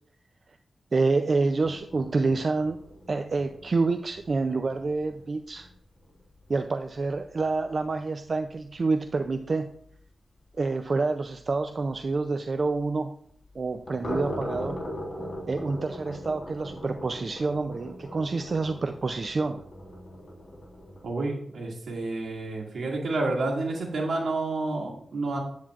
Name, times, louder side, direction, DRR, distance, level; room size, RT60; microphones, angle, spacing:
voice 1, 0.9-2.8 3.1-5.7 6.5-9.7 10.6-13.1 13.5-14.8 15.5-19.6, right 3 dB, 50° right, 7 dB, 0.4 m, -27 dB
sound 1, 1.6-7.5 7.8-7.9 8.3-8.4 8.7-8.8 9.2-9.3 12.1-12.2 13.6-21.0, equal, 45° left, 3.5 m, -40 dB
voice 2, 21.0-25.4, right 2 dB, 80° right, -2 dB, 2.0 m, -29 dB
8.5 x 7.6 x 2.4 m, 0.65 s
cardioid pair, 70°, 0 cm